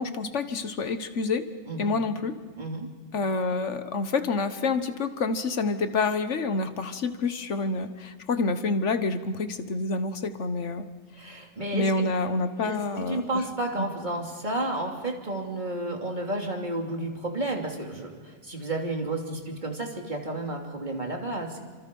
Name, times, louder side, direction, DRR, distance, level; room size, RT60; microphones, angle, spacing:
voice 1, 0.0-1.5 1.8-2.3 3.1-10.9 11.7-13.4 13.8-13.9, left 3 dB, 80° left, 10 dB, 1.6 m, -28 dB
voice 2, 2.6-2.9 11.2-12.1 12.6-12.8 13.1-21.6, right 2 dB, 40° right, 1 dB, 3.3 m, -31 dB
29.0 x 26.0 x 5.5 m, 1.5 s
omnidirectional pair, 1.2 m